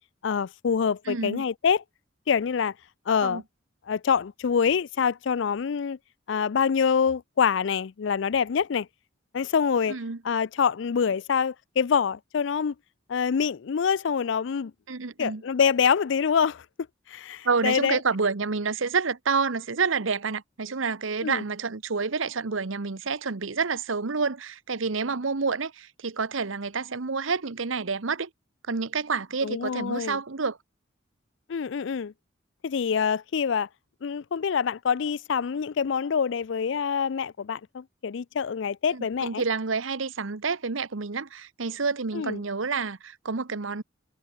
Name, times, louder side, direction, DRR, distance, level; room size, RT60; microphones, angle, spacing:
voice 1, 0.2-1.8 2.3-2.7 3.1-3.4 3.9-6.0 6.3-8.9 9.3-10.0 10.2-12.7 13.1-14.7 15.2-16.6 17.1-18.0 21.2-21.4 29.4-30.2 31.5-32.1 32.6-33.7 34.0-39.4 42.1-42.4, left 6 dB, 65° left, 0.4 m, -25 dB
voice 2, 1.1-1.4 3.2-3.4 9.9-10.2 14.9-15.4 17.4-28.3 28.7-30.6 38.9-43.8, right 4 dB, 80° right, 1.0 m, -28 dB
head